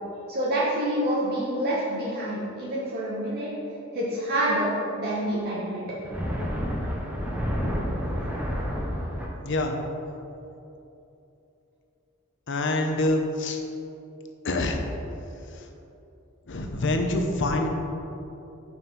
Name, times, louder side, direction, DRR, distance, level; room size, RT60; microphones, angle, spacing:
voice 1, 0.3-3.5 3.9-5.8, right 1 dB, 50° right, -7 dB, 1.2 m, -27 dB
sound 1, 5.9-9.3, equal, 5° right, 1.0 m, -29 dB
voice 2, 9.4-9.7 12.5-13.6 14.4-14.8 16.5-17.7, left 2 dB, 60° left, 4 dB, 0.8 m, -25 dB
6.0 x 5.7 x 5.5 m, 2.9 s
head